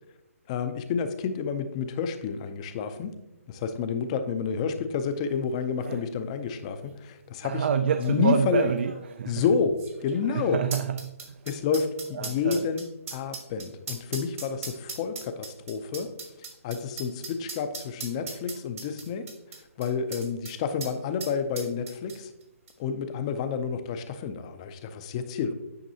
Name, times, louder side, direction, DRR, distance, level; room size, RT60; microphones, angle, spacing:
voice 1, 0.5-3.1 3.5-7.7 8.0-8.7 9.3-9.8 10.0-10.6 11.5-12.9 13.1-16.1 16.6-19.3 19.8-22.3 22.8-25.5, left 6 dB, 25° left, 9 dB, 0.5 m, -29 dB
sound 1, 5.3-5.4 5.6-6.0 6.8-6.9 7.9-20.5 20.8-20.9 21.2-22.4 22.7-22.8, right 4 dB, 65° right, 1.8 m, -39 dB
voice 2, 7.4-9.5 10.3-11.4 12.1-12.6, right 7 dB, 45° right, 10 dB, 0.3 m, -27 dB
9.1 x 5.1 x 2.8 m, 0.93 s
hypercardioid pair, 160°, 8 cm